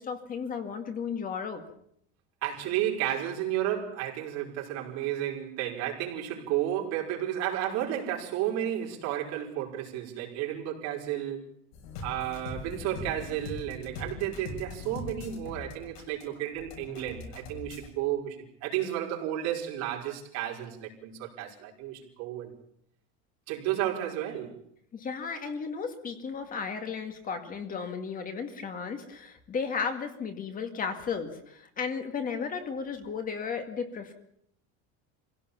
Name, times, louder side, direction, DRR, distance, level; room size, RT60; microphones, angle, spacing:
voice 1, 0.0-1.6 24.9-34.1, left 6 dB, 25° left, 2.1 m, -34 dB
voice 2, 2.4-11.4 12.0-22.5 23.5-24.5, right 11 dB, 55° right, 5.3 m, -32 dB
sound 1, 11.7-17.9, left 3 dB, 70° left, 7.2 m, -42 dB
26.5 x 17.0 x 7.2 m
cardioid pair, 165°, 32 cm